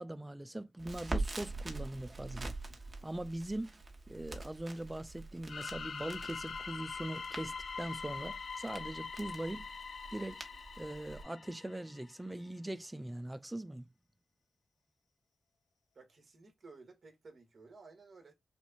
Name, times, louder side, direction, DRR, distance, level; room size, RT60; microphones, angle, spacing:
voice 1, 0.0-2.5 3.0-3.7 4.1-9.7 10.1-10.4 10.8-13.9, right 1 dB, 15° right, 0.4 m, -41 dB
Crackle, 0.8-11.2, right 2 dB, 30° right, 1.3 m, -44 dB
sound 1, 5.5-12.1, left 5 dB, 65° left, 0.5 m, -44 dB
voice 2, 15.9-18.3, right 3 dB, 50° right, 1.9 m, -56 dB
6.2 x 2.4 x 2.8 m
wide cardioid pair, 120°, 0 cm